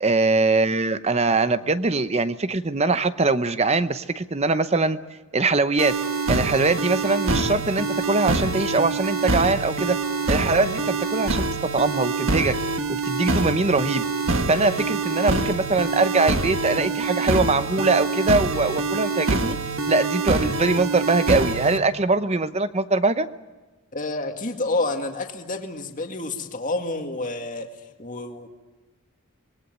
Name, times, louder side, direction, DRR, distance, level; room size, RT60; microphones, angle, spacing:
voice 1, 0.0-5.0 5.3-5.9 6.3-10.0 10.3-11.5 11.7-12.5 12.9-14.0 14.5-19.6 19.9-23.3, right 3 dB, 30° right, 12 dB, 0.8 m, -22 dB
sound 1, 5.8-21.8, right 3 dB, 60° right, 1.6 m, -25 dB
voice 2, 23.9-27.7 28.0-28.5, left 2 dB, 35° left, 4 dB, 2.1 m, -29 dB
25.0 x 20.5 x 9.3 m, 1.2 s
head